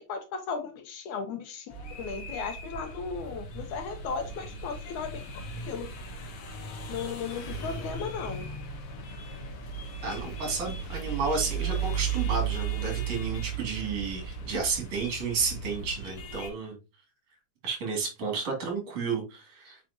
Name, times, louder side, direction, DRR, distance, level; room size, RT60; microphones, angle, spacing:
voice 1, 0.0-5.2 5.6-5.9 6.9-8.5, left 5 dB, 75° left, 6 dB, 2.3 m, -36 dB
sound 1, 1.7-16.5, right 5 dB, 55° left, 1.8 m, -36 dB
voice 2, 10.0-16.8 17.6-19.8, right 5 dB, 55° right, 0 dB, 3.4 m, -32 dB
7.6 x 5.1 x 2.8 m, 0.28 s
omnidirectional pair, 3.6 m